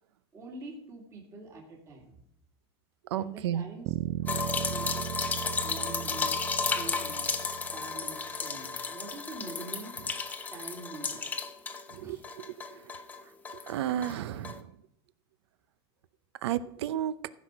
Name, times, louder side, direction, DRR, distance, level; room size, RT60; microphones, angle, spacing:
voice 1, 0.3-2.2 3.2-5.3 5.6-10.0 10.5-11.2 12.0-12.2, right 2 dB, 20° right, -1 dB, 2.3 m, -45 dB
voice 2, 3.1-3.6 11.9-12.2 12.4-12.5 13.7-14.7 16.4-17.1, right 11 dB, 75° right, 16 dB, 0.7 m, -32 dB
sound 1, 3.9-8.2, right 16 dB, 40° right, 0.4 m, -37 dB
sound 2, 4.3-12.0 12.2-13.7 14.0-14.2 14.4-14.6, left 4 dB, 10° left, 0.7 m, -33 dB
14.5 x 6.3 x 4.9 m, 0.78 s
supercardioid pair, 155°, 14 cm